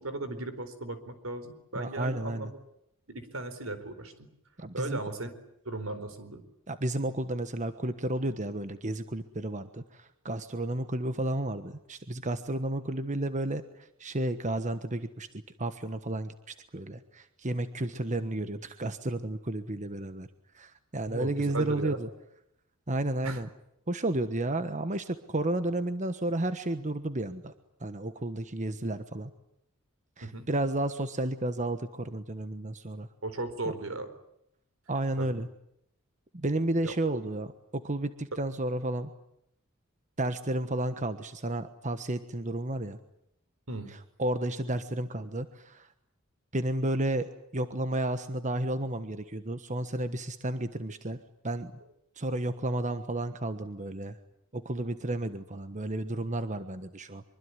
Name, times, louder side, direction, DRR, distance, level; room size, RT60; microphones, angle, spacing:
voice 1, 0.0-2.5 3.1-4.1 4.7-5.3 5.6-6.4 21.1-22.0 23.2-23.4 30.2-30.5 33.2-34.1 35.2-35.4 36.8-37.0 43.7-43.9, right 2 dB, 80° right, 11 dB, 4.3 m, -36 dB
voice 2, 1.7-2.5 4.6-5.0 6.7-13.6 14.0-15.3 15.6-20.3 20.5-22.1 22.9-23.5 23.9-27.5 27.8-29.3 30.2-33.1 34.9-35.5 36.3-37.5 37.7-39.1 40.2-43.0 44.2-45.9 46.5-51.2 51.4-51.7 52.2-54.2 54.5-57.2, right 1 dB, 35° right, 10 dB, 1.3 m, -32 dB
25.0 x 24.0 x 9.9 m, 0.77 s
head